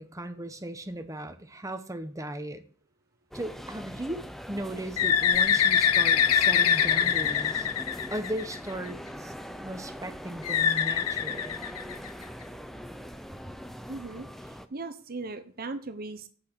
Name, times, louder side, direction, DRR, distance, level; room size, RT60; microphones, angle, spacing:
voice 1, 0.0-2.6 3.3-7.7 8.1-9.3 9.6-11.6, right 1 dB, 15° right, 0.8 m, -37 dB
sound 1, 3.3-14.7, equal, ahead, 0.5 m, -42 dB
Bird, 5.0-8.7 10.4-12.2, left 8 dB, 85° left, 0.6 m, -24 dB
voice 2, 13.9-16.3, right 3 dB, 40° right, 0.8 m, -38 dB
8.1 x 6.2 x 5.9 m
head